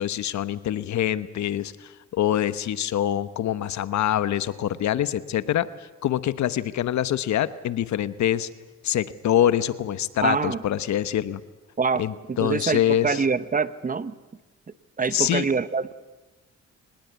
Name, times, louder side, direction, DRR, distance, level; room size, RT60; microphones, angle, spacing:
voice 1, 0.0-5.7 6.0-8.5 8.8-11.4 12.0-13.2 15.1-15.5, left 11 dB, 65° left, 15 dB, 1.0 m, -25 dB
voice 2, 10.2-10.6 11.8-14.1 15.0-15.9, right 5 dB, 25° right, 15 dB, 0.9 m, -25 dB
24.0 x 20.0 x 8.2 m, 1.2 s
cardioid pair, 90°, 30 cm